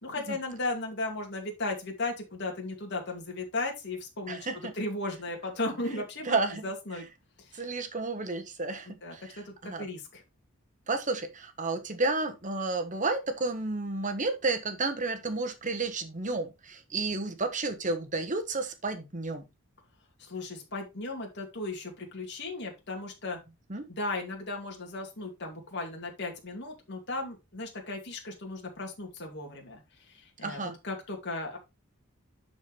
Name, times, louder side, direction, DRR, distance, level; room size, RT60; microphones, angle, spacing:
voice 1, 0.0-4.4 4.7-6.4 6.6-7.0 7.4-7.7 8.9-10.2 20.2-23.4 23.9-29.8 30.1-31.6, left 2 dB, 55° left, 2.4 m, -36 dB
voice 2, 4.3-4.7 6.3-6.6 7.5-9.8 10.9-19.5 23.7-23.9 30.4-30.8, right 3 dB, 35° right, 1.3 m, -31 dB
11.0 x 4.7 x 3.2 m
head